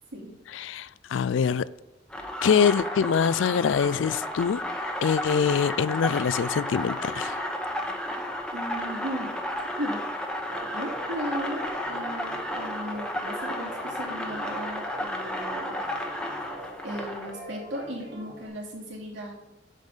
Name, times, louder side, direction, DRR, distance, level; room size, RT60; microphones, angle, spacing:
voice 1, 0.5-1.7 2.4-4.6 5.0-7.3, left 7 dB, 85° left, 0.4 m, -24 dB
sound 1, 2.1-17.3, left 1 dB, 5° left, 1.0 m, -32 dB
voice 2, 8.5-9.3 9.8-10.0 10.7-15.8 16.8-19.4, equal, 85° right, 2.7 m, -36 dB
sound 2, 10.5-18.5, right 1 dB, 65° right, 2.8 m, -43 dB
7.5 x 5.3 x 5.5 m
head